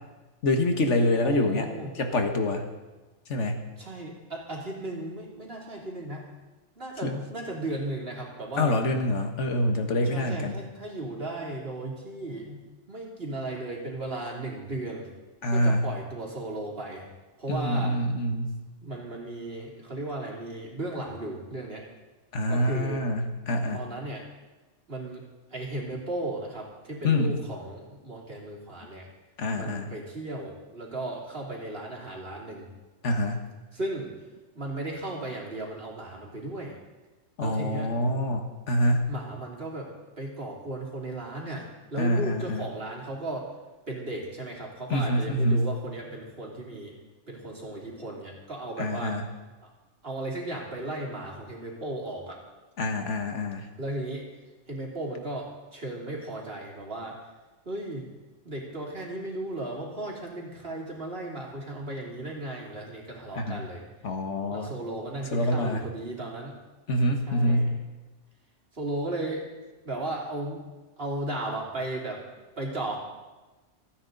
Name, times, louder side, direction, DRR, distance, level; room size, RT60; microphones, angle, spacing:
voice 1, 0.4-1.7 1.9-2.7 3.3-3.6 7.0-7.2 8.6-10.6 15.4-15.9 17.5-18.6 22.3-23.8 27.0-27.3 29.4-29.9 33.0-33.4 37.4-39.1 42.0-42.6 44.9-45.7 48.8-49.2 52.8-53.7 63.3-63.6 64.0-64.7 65.3-65.9 66.9-67.8, left 1 dB, 80° left, 5 dB, 1.7 m, -26 dB
voice 2, 1.2-1.9 3.8-6.3 6.8-8.7 10.0-12.6 12.9-15.1 15.5-17.1 17.4-17.9 18.8-21.8 22.5-23.0 23.7-24.3 24.9-25.2 25.5-29.1 29.5-32.7 33.7-34.1 34.5-36.8 37.4-37.9 39.1-39.9 40.2-43.5 43.9-46.9 47.3-49.2 50.0-52.4 53.8-54.2 54.7-57.2 57.6-58.1 58.4-63.8 64.5-66.5 67.3-67.7 68.7-69.4 69.8-70.6 71.0-72.2 72.6-73.0, right 2 dB, 55° right, -2 dB, 3.2 m, -35 dB
27.5 x 9.5 x 4.0 m, 1.2 s
omnidirectional pair, 1.2 m